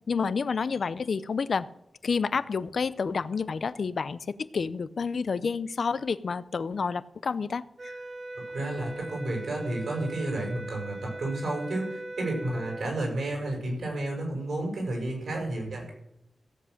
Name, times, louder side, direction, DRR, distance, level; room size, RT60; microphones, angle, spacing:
voice 1, 0.0-1.6 2.0-8.0, left 5 dB, 65° left, 16 dB, 0.6 m, -29 dB
sound 1, 7.8-12.9, right 2 dB, 40° right, 1.0 m, -40 dB
voice 2, 8.5-15.9, right 1 dB, 75° right, 0 dB, 6.8 m, -31 dB
16.5 x 7.7 x 6.6 m, 0.82 s
wide cardioid pair, 90°, 0 cm